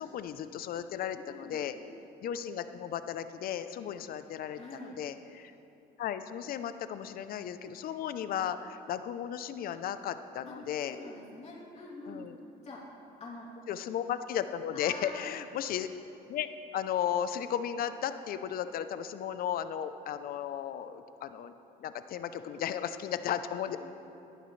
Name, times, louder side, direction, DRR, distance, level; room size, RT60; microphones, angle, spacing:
voice 1, 0.0-1.7 2.2-5.5 6.0-11.0 12.1-12.4 13.7-15.9 16.3-21.5 21.8-23.8, left 9 dB, 60° left, 11 dB, 0.6 m, -35 dB
voice 2, 1.1-1.7 4.5-5.0 10.4-10.5 10.8-12.3 12.6-12.8 13.2-13.5 14.7-15.3 22.5-22.7 23.7-23.8, left 2 dB, 40° left, -4 dB, 3.0 m, -46 dB
17.0 x 11.0 x 3.3 m, 2.9 s
cardioid pair, 110°, 17 cm